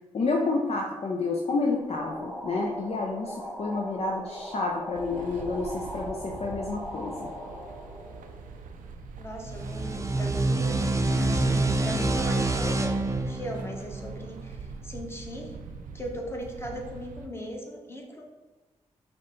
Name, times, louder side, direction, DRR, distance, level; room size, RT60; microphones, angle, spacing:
voice 1, 0.1-7.3, left 3 dB, 50° left, 0 dB, 0.5 m, -29 dB
sound 1, 1.7-9.1, equal, 5° right, 1.3 m, -40 dB
sound 2, 4.9-17.3, right 4 dB, 80° right, 0.4 m, -43 dB
voice 2, 9.2-15.5 15.9-18.2, equal, 20° left, 0 dB, 1.1 m, -38 dB
sound 3, 9.4-14.8, right 2 dB, 20° right, 0.5 m, -27 dB
5.2 x 2.2 x 3.8 m, 1.2 s
supercardioid pair, 40°, 14 cm